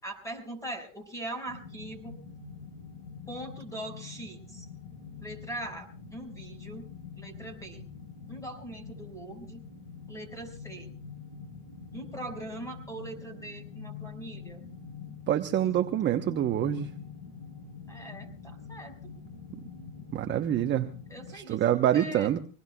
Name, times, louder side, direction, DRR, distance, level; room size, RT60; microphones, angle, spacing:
voice 1, 0.0-2.1 3.3-4.7 5.2-6.8 7.2-7.8 8.3-9.6 10.1-10.9 11.9-14.6 17.9-19.1 21.1-22.3, right 1 dB, 5° left, 6 dB, 5.7 m, -41 dB
sound 1, 1.5-21.3, left 5 dB, 40° left, 3.9 m, -45 dB
voice 2, 15.3-16.9 20.1-20.9 21.3-22.4, right 11 dB, 25° right, 7 dB, 0.9 m, -26 dB
26.5 x 19.0 x 2.3 m, 0.36 s
supercardioid pair, 130°, 46 cm